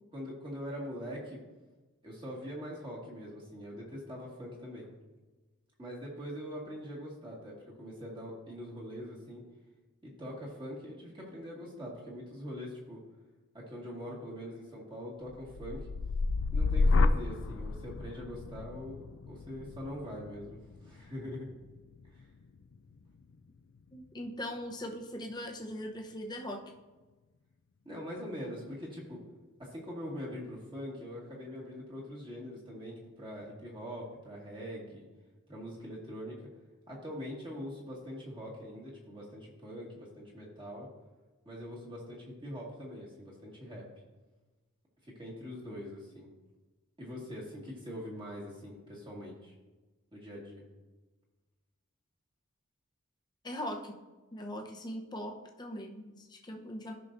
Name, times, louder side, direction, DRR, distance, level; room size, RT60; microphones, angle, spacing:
voice 1, 0.1-1.4 2.0-4.9 5.8-9.4 10.0-13.0 13.5-15.9 16.5-19.0 19.3-21.5 22.1-22.3 27.9-29.2 29.6-35.1 35.5-36.4 36.9-40.9 41.4-43.8 45.0-46.3 47.0-49.5 50.1-50.6, equal, 20° right, -4 dB, 1.9 m, -43 dB
sound 1, 15.3-23.3 23.8-24.3, left 3 dB, 65° left, 0.4 m, -32 dB
voice 2, 23.9-26.7 53.4-54.0 54.3-56.9, equal, 20° left, 1 dB, 0.8 m, -40 dB
14.0 x 5.7 x 2.6 m, 1.2 s
head